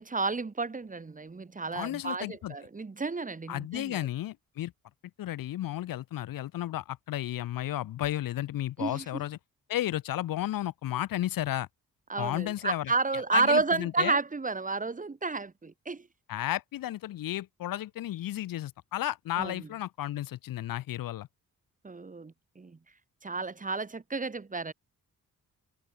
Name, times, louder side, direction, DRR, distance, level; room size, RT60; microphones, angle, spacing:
voice 1, 0.0-4.1 8.8-9.0 12.1-16.1 19.4-19.7 21.8-22.8 23.2-24.7, right 3 dB, 25° right, 1.4 m, -31 dB
voice 2, 1.7-2.5 3.5-4.7 5.2-9.4 9.7-11.7 12.2-12.9 13.3-14.2 16.3-21.3, left 13 dB, 75° left, 0.7 m, -33 dB
cardioid pair, 95°, 35 cm